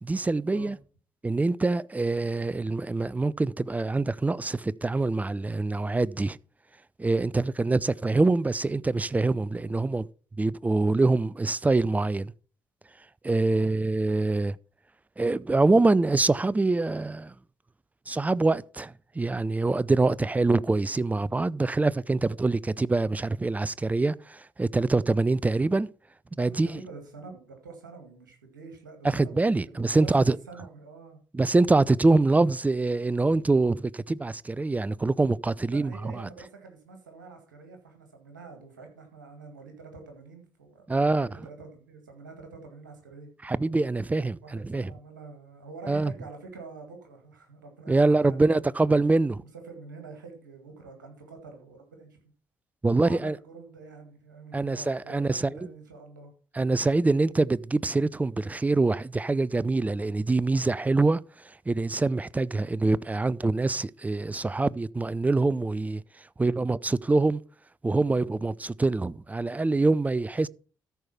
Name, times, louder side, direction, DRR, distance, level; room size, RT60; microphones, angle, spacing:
voice 1, 0.0-0.8 1.2-6.4 7.0-10.1 10.4-12.3 13.2-14.6 15.2-17.3 18.1-25.9 26.4-26.8 29.0-30.4 31.3-36.3 40.9-41.3 43.4-44.9 45.9-46.1 47.9-49.4 52.8-53.4 54.5-55.6 56.6-61.2 61.7-66.0 66.4-67.4 67.8-70.5, right 3 dB, 15° right, 0.4 m, -25 dB
voice 2, 26.4-31.2 35.7-43.3 44.4-48.6 49.4-52.2 53.0-56.3, right 4 dB, 85° right, 1.9 m, -46 dB
13.5 x 4.8 x 5.7 m
figure-of-eight pair, 45°, 10 cm